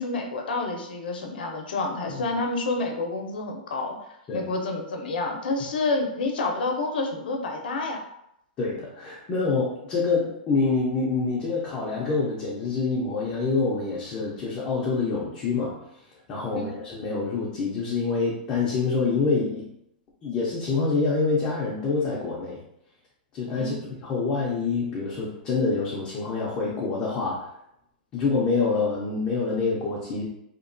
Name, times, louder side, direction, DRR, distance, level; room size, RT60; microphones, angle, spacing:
voice 1, 0.0-4.0 4.3-8.0 16.5-16.7 23.5-23.7, left 3 dB, 80° left, 3 dB, 0.5 m, -28 dB
voice 2, 8.6-15.8 16.3-19.7 20.2-22.6 23.3-27.5 28.1-30.2, left 4 dB, 15° left, -5 dB, 0.3 m, -26 dB
2.8 x 2.2 x 2.5 m, 0.78 s
supercardioid pair, 175°, 5 cm